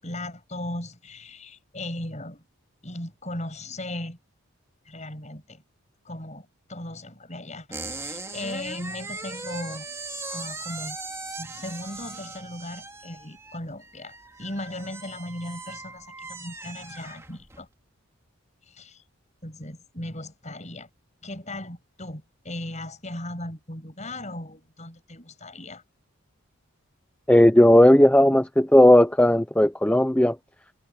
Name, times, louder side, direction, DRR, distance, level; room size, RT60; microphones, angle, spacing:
voice 1, 0.0-2.4 2.8-4.2 4.9-5.6 6.0-9.9 10.3-11.0 11.4-17.7 18.7-19.0 19.4-20.9 21.2-25.8, left 1 dB, 30° left, 7.9 m, -37 dB
sound 1, 7.7-17.7, right 3 dB, 15° right, 2.4 m, -39 dB
voice 2, 27.3-30.4, left 1 dB, 5° left, 0.6 m, -16 dB
head